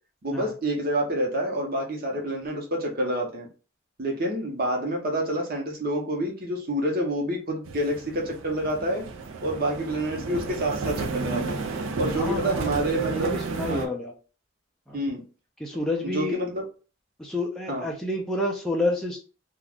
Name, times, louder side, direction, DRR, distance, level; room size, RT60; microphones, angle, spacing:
voice 1, 0.2-3.5 4.0-9.0 9.4-11.6 12.0-13.4 13.7-13.9 14.9-15.2 16.0-16.6 17.7-17.9, right 1 dB, 45° right, 1 dB, 0.8 m, -28 dB
sound 1, 7.6-13.9, right 4 dB, 75° right, 0.4 m, -32 dB
voice 2, 12.2-12.7 13.1-14.1 14.9-15.0 15.6-16.4 17.2-19.2, left 1 dB, 5° left, -2 dB, 0.3 m, -29 dB
2.4 x 2.3 x 3.4 m, 0.35 s
head